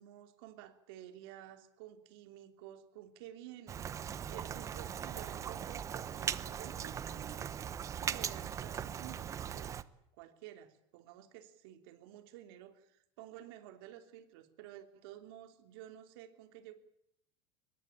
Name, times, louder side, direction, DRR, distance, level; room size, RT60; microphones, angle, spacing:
voice 1, 0.0-7.5 8.0-9.7 10.2-16.7, right 12 dB, 70° right, 7 dB, 3.3 m, -52 dB
Rain, 3.7-9.8, right 8 dB, 25° right, 0.9 m, -39 dB
23.5 x 20.5 x 8.9 m, 0.75 s
supercardioid pair, 145°, 13 cm